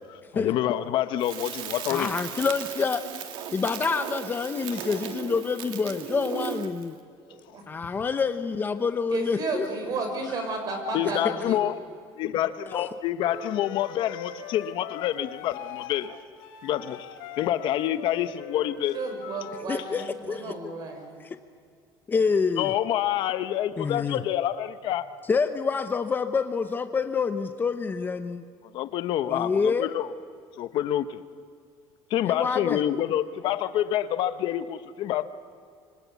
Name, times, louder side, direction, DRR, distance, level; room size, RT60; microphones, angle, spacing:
voice 1, 0.0-2.1 10.9-11.8 12.2-16.2 16.6-19.0 22.6-25.1 28.7-30.1 30.6-31.2 32.1-35.2, left 12 dB, 60° left, 11 dB, 1.1 m, -27 dB
Crackle, 1.2-6.9, right 9 dB, 60° right, 2.4 m, -36 dB
voice 2, 1.9-3.1 3.5-7.0 7.7-9.7 11.0-11.3 12.7-12.9 19.7-20.7 21.2-21.4 22.1-22.7 23.8-24.2 25.3-28.4 29.3-29.9 32.2-32.8, left 5 dB, 20° left, 9 dB, 0.9 m, -27 dB
voice 3, 7.3-7.6 9.1-11.6 18.9-21.1, right 3 dB, 45° right, 5 dB, 6.5 m, -33 dB
Wind instrument woodwind instrument, 13.2-19.6, left 9 dB, 85° left, 3.5 m, -41 dB
26.5 x 25.0 x 8.3 m, 2.3 s
cardioid pair, 150°, 9 cm